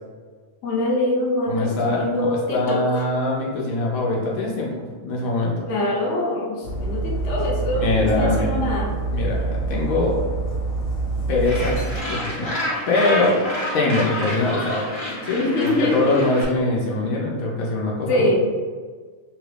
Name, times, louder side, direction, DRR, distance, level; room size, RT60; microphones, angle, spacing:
voice 1, 0.6-3.0 5.7-8.9 15.3-16.2 18.1-18.4, left 1 dB, 65° left, -3 dB, 1.0 m, -24 dB
voice 2, 1.5-5.7 7.7-8.5 9.1-10.2 11.3-11.8 12.0-12.5 12.9-13.4 13.7-14.8 15.2-18.3, left 2 dB, 85° left, -3 dB, 1.1 m, -23 dB
Dog, 6.6-12.0, right 3 dB, 50° left, 1.3 m, -26 dB
Gull seagull, 11.4-16.4, left 1 dB, 35° left, 0.5 m, -29 dB
3.1 x 2.4 x 3.3 m, 1.5 s
omnidirectional pair, 1.4 m